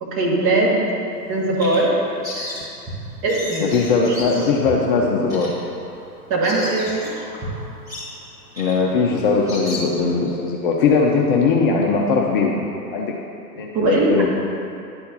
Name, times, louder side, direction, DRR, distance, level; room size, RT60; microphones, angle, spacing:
voice 1, 0.0-0.8 1.3-2.0 3.2-3.7 4.1-4.2 6.3-7.2 13.7-14.3, right 2 dB, 25° right, -3 dB, 1.8 m, -20 dB
Bird vocalization bird call bird song, 1.1-10.3, equal, 5° right, 2.1 m, -35 dB
voice 2, 3.6-5.5 8.6-12.6 12.9-13.1 13.5-14.3, left 4 dB, 30° left, -1 dB, 0.7 m, -19 dB
10.5 x 4.5 x 6.8 m, 2.6 s
figure-of-eight pair, 110°, 50 cm